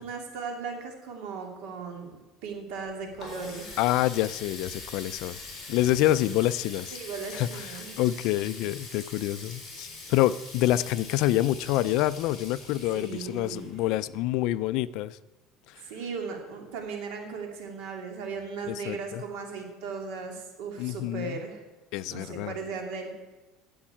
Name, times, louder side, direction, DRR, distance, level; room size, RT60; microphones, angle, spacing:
voice 1, 0.0-3.8 6.9-7.9 12.9-13.8 15.8-21.6 22.0-23.1, right 5 dB, 65° right, 2 dB, 2.7 m, -37 dB
Water tap faucet, 2.7-14.4, left 3 dB, 20° left, 4.1 m, -43 dB
voice 2, 3.8-5.4 5.7-6.9 7.3-15.2 15.7-15.8 18.7-19.2 20.8-21.4 21.9-22.5, left 14 dB, 55° left, 17 dB, 0.4 m, -27 dB
10.0 x 7.2 x 8.8 m, 1.1 s
cardioid pair, 160°, 0 cm